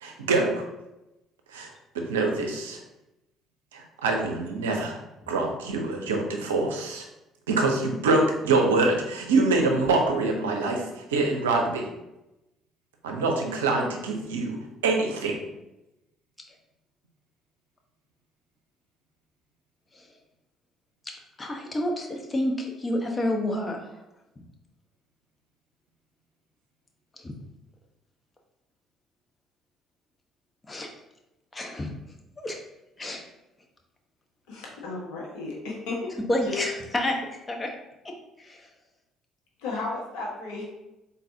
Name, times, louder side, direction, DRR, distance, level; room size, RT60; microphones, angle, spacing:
voice 1, 0.0-0.6 1.5-2.8 3.7-5.0 5.3-7.0 7.5-11.9 13.0-14.6 14.8-15.4, right 3 dB, 80° right, 2 dB, 0.6 m, -25 dB
voice 2, 21.4-24.0 27.2-27.3 30.7-30.9 31.5-31.9 32.4-32.6 33.0-33.2 36.3-37.7 38.0-38.7, left 1 dB, 25° left, 2 dB, 0.9 m, -29 dB
voice 3, 34.5-36.1 36.4-36.7 39.6-40.6, left 3 dB, 70° left, -3 dB, 1.2 m, -34 dB
4.0 x 3.9 x 2.7 m, 0.94 s
hypercardioid pair, 50°, 0 cm